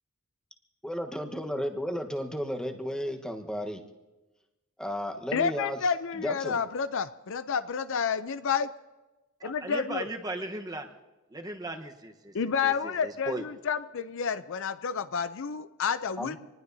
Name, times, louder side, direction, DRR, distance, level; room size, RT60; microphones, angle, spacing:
voice 1, 0.8-3.8 4.8-5.8 6.2-6.6 16.2-16.4, equal, 5° left, 3 dB, 1.2 m, -33 dB
voice 2, 5.3-8.7 9.4-10.1 12.3-16.4, left 6 dB, 65° left, 12 dB, 0.6 m, -30 dB
voice 3, 9.4-10.9 11.3-13.4, right 2 dB, 20° right, 4 dB, 1.1 m, -37 dB
26.5 x 19.5 x 2.8 m, 1.1 s
head